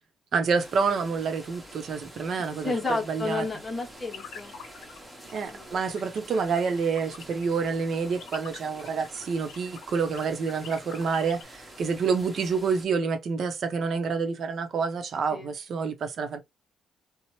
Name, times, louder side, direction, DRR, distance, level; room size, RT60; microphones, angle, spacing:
voice 1, 0.3-3.5 5.3-16.4, right 5 dB, 60° right, 0.6 m, -28 dB
sound 1, 0.6-12.9, equal, 10° right, 0.9 m, -47 dB
voice 2, 2.6-4.5 5.5-5.7 15.3-15.5, left 3 dB, 30° left, 1.0 m, -31 dB
sound 2, 4.1-5.0 5.3-5.5 5.8-11.4, left 7 dB, 85° left, 0.7 m, -45 dB
2.8 x 2.0 x 2.9 m
cardioid pair, 90°, 0 cm